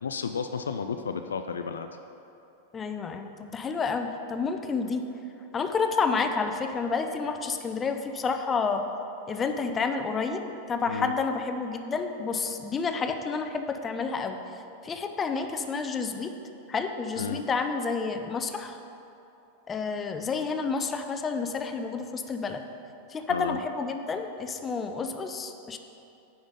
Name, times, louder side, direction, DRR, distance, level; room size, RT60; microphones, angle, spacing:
voice 1, 0.0-1.9 10.9-11.1 17.2-17.4 23.3-23.6, left 6 dB, 70° left, 8 dB, 0.4 m, -32 dB
voice 2, 2.7-5.0 5.5-8.8 9.3-14.4 14.8-16.3 16.7-18.8 19.7-22.6 23.1-25.8, left 5 dB, 20° left, 6 dB, 0.6 m, -30 dB
9.8 x 5.1 x 5.2 m, 2.8 s
figure-of-eight pair, 90°, 0 cm